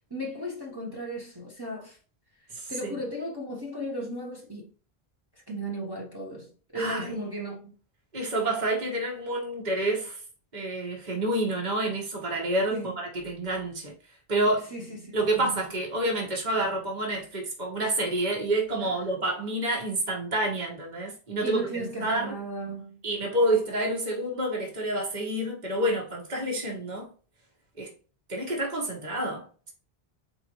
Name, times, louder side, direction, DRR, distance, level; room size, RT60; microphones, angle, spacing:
voice 1, 0.1-2.0 2.7-4.7 5.5-7.7 12.7-13.0 14.7-15.7 18.8-19.1 21.4-23.0, equal, 25° right, 1.1 m, -35 dB
voice 2, 6.7-7.1 8.1-10.2 10.5-13.9 14.3-14.7 15.1-22.4 23.0-27.1 27.8-27.9 28.3-29.7, right 1 dB, 45° right, 1.6 m, -28 dB
4.4 x 3.8 x 3.0 m
omnidirectional pair, 1.0 m